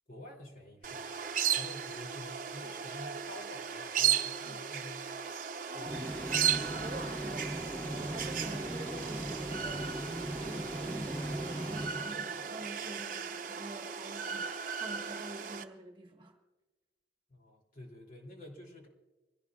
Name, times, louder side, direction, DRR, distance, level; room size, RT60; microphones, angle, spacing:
voice 1, 0.1-1.1 1.5-5.2 5.7-6.5 7.0-7.1 17.3-18.9, left 1 dB, 50° left, 0 dB, 3.0 m, -49 dB
sound 1, 0.8-15.6, right 8 dB, 45° right, 0.8 m, -36 dB
voice 2, 5.7-6.3 6.6-9.9 10.4-16.4, right 1 dB, 25° right, 2 dB, 1.5 m, -47 dB
sound 2, 5.8-12.6, right 1 dB, 10° left, 2.4 m, -39 dB
25.0 x 17.0 x 2.4 m, 1.2 s
head